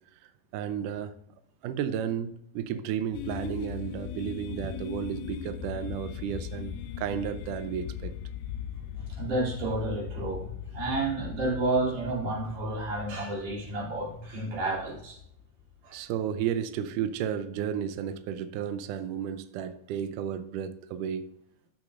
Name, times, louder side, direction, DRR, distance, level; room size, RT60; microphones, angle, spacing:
voice 1, 0.1-1.1 1.6-8.1 15.9-21.4, right 9 dB, 85° right, 1.8 m, -33 dB
sound 1, 3.1-16.0, left 9 dB, 85° left, 2.5 m, -39 dB
voice 2, 9.2-15.2 15.8-16.0, right 2 dB, 55° right, 4.4 m, -31 dB
14.0 x 6.2 x 2.5 m
omnidirectional pair, 4.4 m